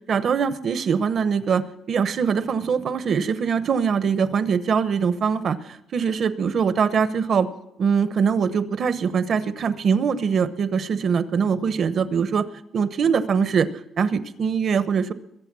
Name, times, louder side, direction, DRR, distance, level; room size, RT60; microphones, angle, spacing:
voice 1, 0.1-7.5 7.8-12.5 12.7-13.7 14.0-15.1, right 6 dB, 55° right, 13 dB, 1.0 m, -22 dB
22.5 x 7.9 x 6.2 m, 0.83 s
cardioid pair, 90°, 0 cm